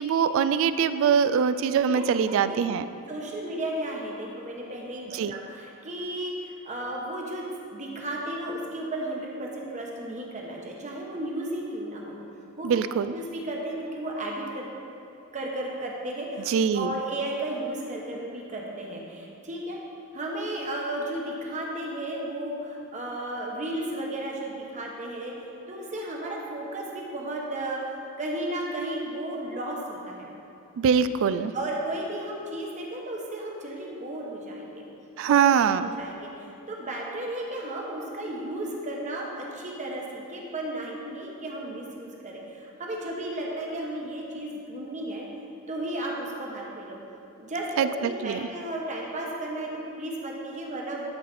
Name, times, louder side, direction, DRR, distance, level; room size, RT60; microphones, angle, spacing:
voice 1, 0.0-2.8 5.1-5.3 12.6-13.1 16.5-16.9 30.8-31.5 35.2-35.9 47.8-47.9 48.2-48.5, right 7 dB, 65° right, 14 dB, 0.3 m, -23 dB
voice 2, 1.9-2.7 3.1-7.5 7.7-12.2 12.6-12.7 13.1-14.7 15.3-19.8 20.1-25.3 25.7-27.8 28.2-30.3 31.5-34.9 35.3-35.4 35.8-45.3 45.7-47.0 47.4-51.1, right 1 dB, 35° right, -1 dB, 1.1 m, -34 dB
12.0 x 4.1 x 4.2 m, 2.8 s
head